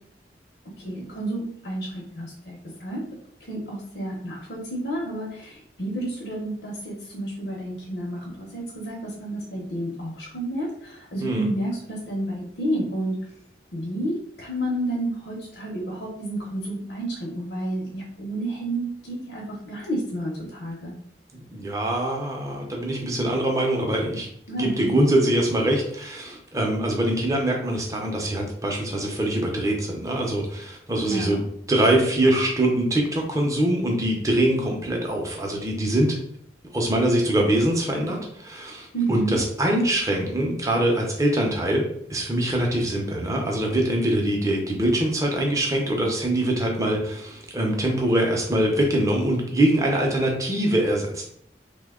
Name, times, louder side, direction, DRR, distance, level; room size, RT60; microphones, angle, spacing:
voice 1, 0.8-3.0 3.4-13.2 13.7-20.9 24.5-25.0 30.9-31.4 38.9-39.4, right 1 dB, 65° left, -3 dB, 0.8 m, -30 dB
voice 2, 21.3-24.3 24.6-31.4 31.7-36.2 36.7-51.3, right 1 dB, 20° right, 0 dB, 0.6 m, -23 dB
2.8 x 2.2 x 3.5 m, 0.68 s
head